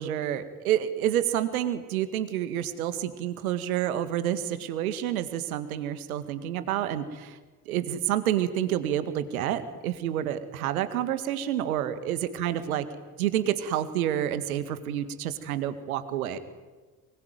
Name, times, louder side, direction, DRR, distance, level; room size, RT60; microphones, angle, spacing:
voice 1, 0.0-7.4 7.7-12.9 13.2-16.4, right 11 dB, 70° right, 11 dB, 2.0 m, -29 dB
24.0 x 22.0 x 9.4 m, 1.3 s
figure-of-eight pair, 60°, 45 cm